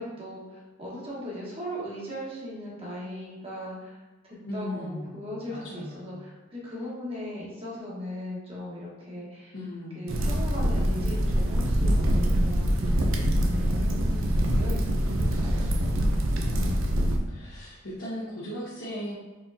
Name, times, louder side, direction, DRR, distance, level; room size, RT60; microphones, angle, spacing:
voice 1, 0.0-9.5 9.9-13.0 13.3-15.7, left 1 dB, 30° right, -6 dB, 1.3 m, -38 dB
voice 2, 4.5-5.2 5.5-6.1 9.5-10.1 16.6-19.2, left 1 dB, 60° left, -9 dB, 1.1 m, -37 dB
sound 1, 10.1-17.2, equal, 75° right, 0.5 m, -24 dB
4.4 x 3.8 x 2.7 m, 1.2 s
head